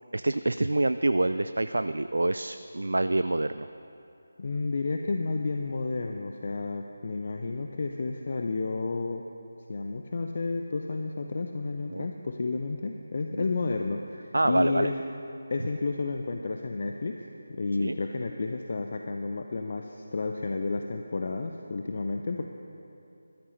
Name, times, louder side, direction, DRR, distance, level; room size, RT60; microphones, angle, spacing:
voice 1, 0.1-3.7 11.9-12.1 13.3-13.4 14.3-14.9 17.8-18.0, right 2 dB, 65° right, 11 dB, 0.3 m, -26 dB
voice 2, 4.4-9.2 9.7-14.9 15.5-17.2 17.5-22.5, left 3 dB, 45° left, 4 dB, 0.6 m, -31 dB
20.0 x 13.0 x 3.2 m, 2.9 s
figure-of-eight pair, 155°, 0 cm